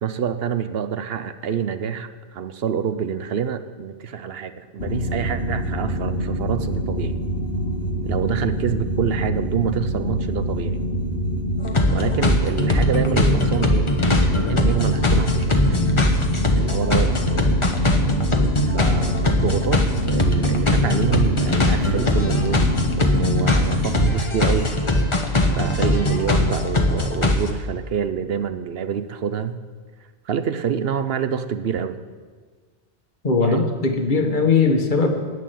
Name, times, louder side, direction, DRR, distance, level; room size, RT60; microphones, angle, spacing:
voice 1, 0.0-7.2 8.0-10.8 11.9-13.9 14.5-15.8 16.5-17.4 18.7-22.7 23.0-24.7 25.6-29.6 30.3-32.0 33.4-33.8, right 7 dB, 65° right, 11 dB, 0.9 m, -27 dB
sound 1, 4.8-24.1, equal, 65° left, 1.5 m, -26 dB
sound 2, 11.6-27.5, left 1 dB, 25° left, 1.1 m, -20 dB
voice 2, 33.2-35.1, left 4 dB, 45° left, 4 dB, 1.5 m, -19 dB
11.0 x 8.5 x 9.2 m, 1.5 s
omnidirectional pair, 1.1 m